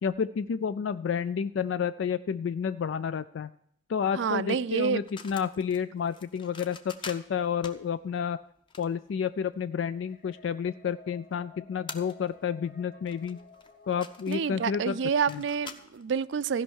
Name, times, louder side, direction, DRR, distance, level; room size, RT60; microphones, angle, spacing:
voice 1, 0.0-3.5 3.9-8.4 8.8-13.4 13.9-15.0 15.3-15.4, left 7 dB, 85° left, 0.3 m, -30 dB
voice 2, 4.2-5.0 14.3-16.6, right 6 dB, 75° right, 0.4 m, -28 dB
sound 1, 4.8-10.0 10.5-10.6 11.4-11.5 11.8-12.6 12.8-16.0, left 4 dB, 25° left, 0.7 m, -45 dB
sound 2, 9.7-16.1, left 5 dB, 45° left, 1.3 m, -55 dB
15.0 x 5.5 x 6.3 m
head